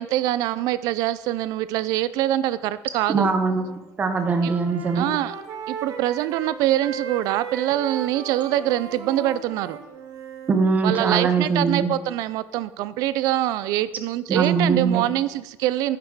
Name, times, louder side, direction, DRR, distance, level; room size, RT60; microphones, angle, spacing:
voice 1, 0.0-3.3 4.4-4.5 5.0-5.3 5.7-9.8 10.8-16.0, right 13 dB, 80° right, 16 dB, 0.4 m, -24 dB
voice 2, 3.1-3.6 4.0-5.1 10.5-11.9 14.3-15.1, right 4 dB, 25° right, 7 dB, 0.8 m, -21 dB
Wind instrument woodwind instrument, 3.3-3.8 4.0-10.6, right 6 dB, 60° right, 1.0 m, -36 dB
9.5 x 5.7 x 4.7 m, 0.99 s
cardioid pair, 165°, 6 cm